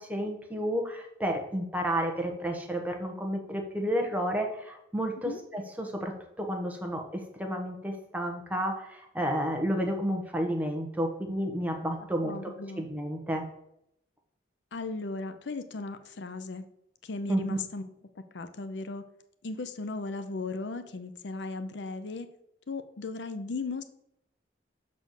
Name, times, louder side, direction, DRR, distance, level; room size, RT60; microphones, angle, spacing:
voice 1, 0.0-12.4 12.8-13.4 17.3-17.6, equal, 10° right, 2 dB, 1.0 m, -31 dB
voice 2, 12.2-12.9 14.7-16.6 17.0-17.9 18.3-19.0 19.4-22.3 22.7-23.8, left 3 dB, 75° left, 9 dB, 0.6 m, -36 dB
6.7 x 4.2 x 6.4 m, 0.77 s
head